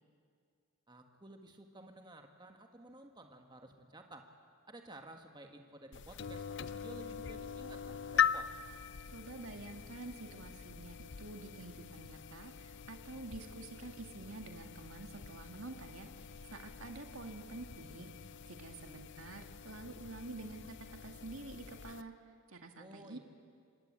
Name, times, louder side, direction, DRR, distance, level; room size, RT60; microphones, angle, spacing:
voice 1, 0.9-4.3 4.7-8.5 22.8-23.2, right 1 dB, 20° right, 4 dB, 1.6 m, -53 dB
sound 1, 5.9-22.0, left 8 dB, 55° left, 0.6 m, -41 dB
voice 2, 9.1-22.1 22.5-23.2, right 2 dB, 80° right, 5 dB, 2.0 m, -48 dB
26.0 x 21.0 x 8.8 m, 2.2 s
head